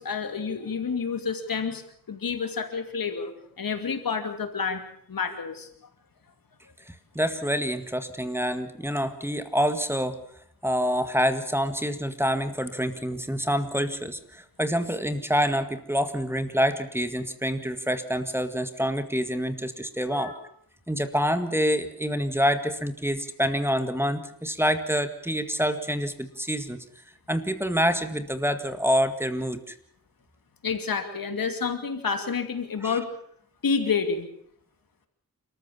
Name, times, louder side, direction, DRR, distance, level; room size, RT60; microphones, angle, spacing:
voice 1, 0.0-1.8 2.1-3.3 3.6-4.8 5.1-5.7 20.1-20.4 30.6-33.1 33.6-34.3, left 5 dB, 80° left, 7 dB, 2.6 m, -29 dB
voice 2, 6.9-10.2 10.6-20.3 20.9-26.8 27.3-29.7 32.8-32.9, equal, 5° right, 9 dB, 1.9 m, -27 dB
29.0 x 14.0 x 7.2 m, 0.68 s
wide cardioid pair, 70°, 34 cm